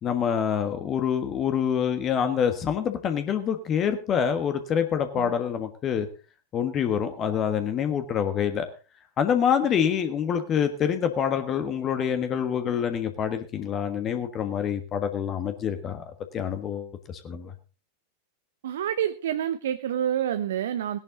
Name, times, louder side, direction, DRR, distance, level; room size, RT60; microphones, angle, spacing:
voice 1, 0.0-6.1 6.5-8.7 9.2-16.0 16.3-17.5, left 8 dB, 30° left, 8 dB, 1.5 m, -26 dB
voice 2, 18.6-21.0, right 10 dB, 60° right, 12 dB, 0.7 m, -28 dB
18.0 x 10.5 x 3.8 m, 0.34 s
figure-of-eight pair, 90°, 0 cm